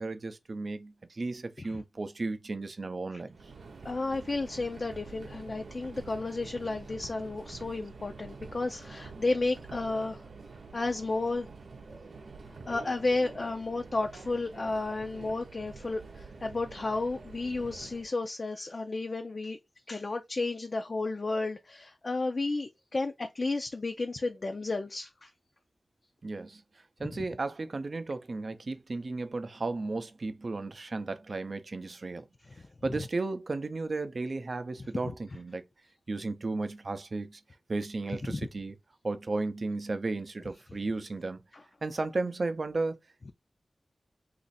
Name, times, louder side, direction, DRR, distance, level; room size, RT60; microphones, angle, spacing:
voice 1, 0.0-3.4 26.2-26.6 27.0-32.3 32.8-35.6 36.1-37.4 37.7-38.8 39.0-41.4 41.8-43.0, right 3 dB, 50° right, 0.5 m, -34 dB
Subway metro underground, 3.3-18.1, right 4 dB, 85° right, 0.7 m, -47 dB
voice 2, 3.8-10.2 10.7-11.5 12.7-19.6 19.9-25.3 38.3-38.4, left 3 dB, 45° left, 0.4 m, -32 dB
3.1 x 2.5 x 4.1 m
wide cardioid pair, 105°, 0 cm